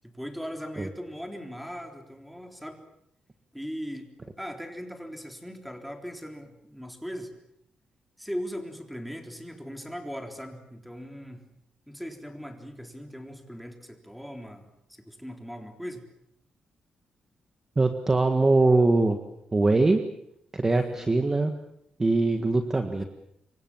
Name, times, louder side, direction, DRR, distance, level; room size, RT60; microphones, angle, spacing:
voice 1, 0.0-2.8 3.5-4.1 4.4-7.3 8.2-11.5 11.9-16.0 20.7-21.1 22.7-23.1, equal, ahead, 5 dB, 3.7 m, -39 dB
voice 2, 17.7-19.2 19.5-20.0 20.5-21.5 22.0-23.0, right 2 dB, 20° right, 7 dB, 1.7 m, -22 dB
28.0 x 24.0 x 7.4 m, 0.77 s
wide cardioid pair, 135°, 2 cm